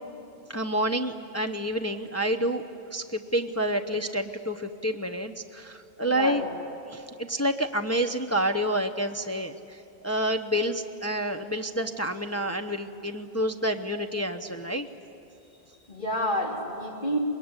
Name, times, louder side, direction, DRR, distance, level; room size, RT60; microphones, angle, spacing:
voice 1, 0.5-2.6 2.9-6.4 6.9-14.9, equal, 15° left, 5 dB, 0.7 m, -28 dB
voice 2, 6.0-6.5 15.9-17.2, equal, 50° left, -1 dB, 3.7 m, -29 dB
24.5 x 21.0 x 9.7 m, 2.8 s
omnidirectional pair, 1.1 m